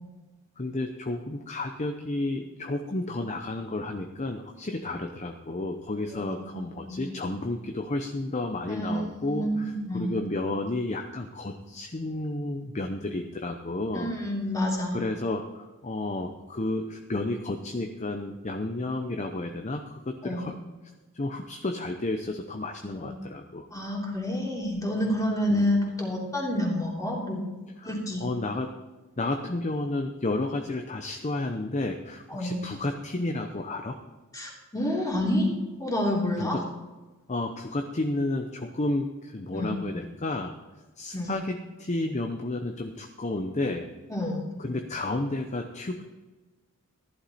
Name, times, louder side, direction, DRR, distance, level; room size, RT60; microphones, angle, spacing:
voice 1, 0.6-14.1 14.9-20.6 21.1-23.7 25.5-25.7 27.8-27.9 28.2-28.7 29.2-34.0 36.4-36.6 37.3-40.5 41.0-43.9 44.6-46.1, left 2 dB, 30° left, 5 dB, 0.7 m, -31 dB
voice 2, 6.1-6.5 6.7-7.1 8.7-10.2 13.9-15.0 20.2-20.5 22.8-23.1 23.7-27.4 27.8-28.2 32.3-32.6 34.3-35.5 35.8-36.6 39.5-39.7 41.1-41.3 44.1-44.5, left 1 dB, 15° left, -2 dB, 3.0 m, -29 dB
14.5 x 11.5 x 4.2 m, 1.2 s
head